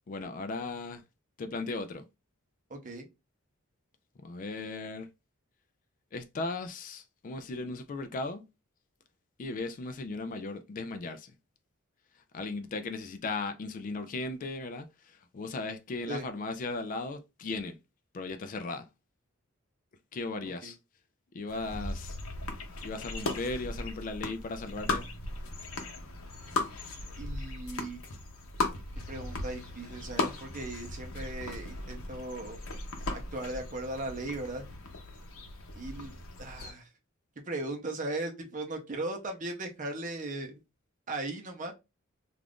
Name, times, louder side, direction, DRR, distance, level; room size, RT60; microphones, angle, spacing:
voice 1, 0.1-1.0 1.4-2.0 4.2-5.1 6.1-8.4 9.4-11.3 12.3-17.8 18.1-18.9 20.1-20.8 21.3-22.2 22.8-25.0, left 3 dB, 40° left, 0.3 m, -37 dB
voice 2, 2.7-3.1 16.1-16.2 20.6-20.7 27.2-28.0 29.1-32.6 33.1-34.6 35.8-36.9 37.4-40.6 41.1-41.7, right 2 dB, 35° right, 0.6 m, -38 dB
sound 1, 21.5-36.7, left 2 dB, 80° left, 0.7 m, -37 dB
2.4 x 2.4 x 3.4 m
head